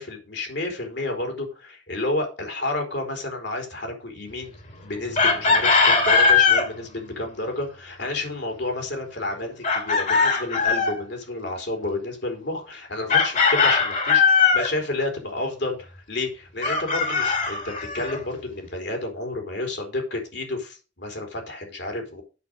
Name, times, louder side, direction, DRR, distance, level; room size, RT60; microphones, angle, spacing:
voice 1, 0.0-4.5 4.8-22.2, left 2 dB, 65° left, 4 dB, 3.9 m, -30 dB
Chicken rooster, 5.2-6.7 9.6-11.0 13.1-14.7 16.6-18.2, left 5 dB, 45° left, 2.5 m, -19 dB
8.3 x 6.9 x 6.4 m, 0.33 s
head